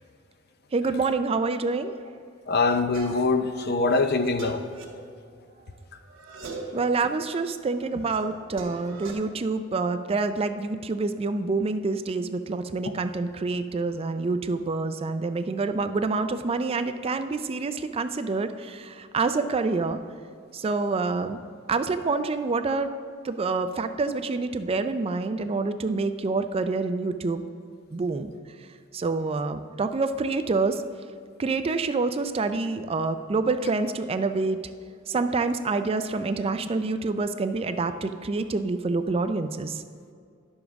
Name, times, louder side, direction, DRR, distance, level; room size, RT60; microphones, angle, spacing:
voice 1, 0.7-2.0 6.7-20.0 20.5-21.4 21.7-22.9 23.2-27.4 27.9-28.3 28.9-30.8 31.4-34.6 35.1-39.8, right 3 dB, 30° right, 0.4 m, -27 dB
voice 2, 2.5-4.6, left 3 dB, 50° left, 0.5 m, -23 dB
sound 1, 2.9-3.4 3.9-5.7 6.0-6.9 7.3-9.1, right 2 dB, 65° right, 1.3 m, -41 dB
10.5 x 7.1 x 3.5 m
head